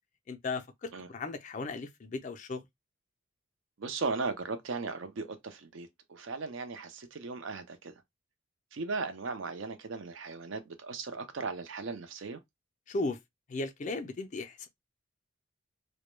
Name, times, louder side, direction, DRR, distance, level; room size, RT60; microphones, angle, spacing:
voice 1, 0.3-2.6 12.9-13.2 13.5-14.7, left 3 dB, 35° left, 0.3 m, -36 dB
voice 2, 3.8-7.9 8.7-12.4, right 4 dB, 70° right, 0.5 m, -37 dB
2.1 x 2.1 x 3.0 m
head